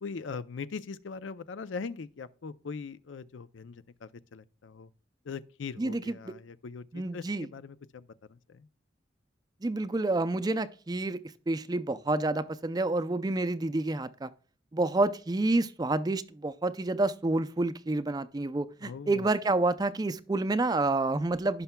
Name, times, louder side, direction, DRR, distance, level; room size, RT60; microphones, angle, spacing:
voice 1, 0.0-4.9 5.3-8.7 18.8-19.3, left 5 dB, 90° left, 0.5 m, -41 dB
voice 2, 5.8-6.2 6.9-7.5 9.6-11.2 11.5-14.3 14.7-21.6, right 2 dB, 20° right, 0.4 m, -29 dB
16.5 x 5.7 x 2.2 m
head